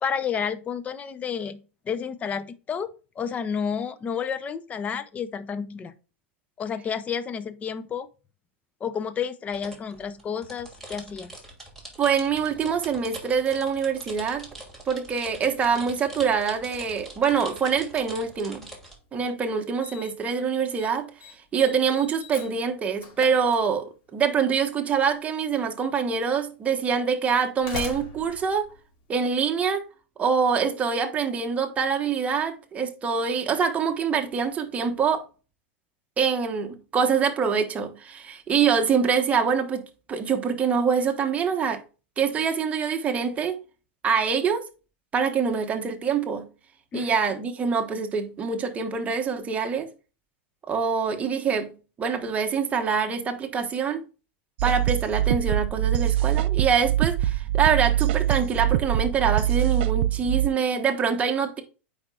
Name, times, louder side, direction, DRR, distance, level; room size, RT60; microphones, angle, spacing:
voice 1, 0.0-5.9 6.6-8.1 8.8-11.3 46.9-47.2, left 7 dB, 20° left, 0.6 m, -31 dB
sound 1, 9.5-18.9, right 1 dB, 5° left, 2.6 m, -43 dB
voice 2, 12.0-14.5 14.9-18.7 19.1-21.1 21.5-28.6 29.1-29.8 30.2-35.2 36.2-39.8 40.1-41.8 42.2-43.6 44.0-44.6 45.1-46.5 46.9-49.9 50.7-54.0 54.6-61.6, right 6 dB, 20° right, 1.2 m, -25 dB
Slam, 19.0-19.1 19.8-20.3 20.6-20.9 21.2-24.1 25.3-25.4 26.2-26.3 27.3-29.6, left 3 dB, 50° left, 2.5 m, -40 dB
sound 2, 54.6-60.5, right 13 dB, 65° right, 0.4 m, -24 dB
8.6 x 5.0 x 2.4 m
hypercardioid pair, 125°, 6 cm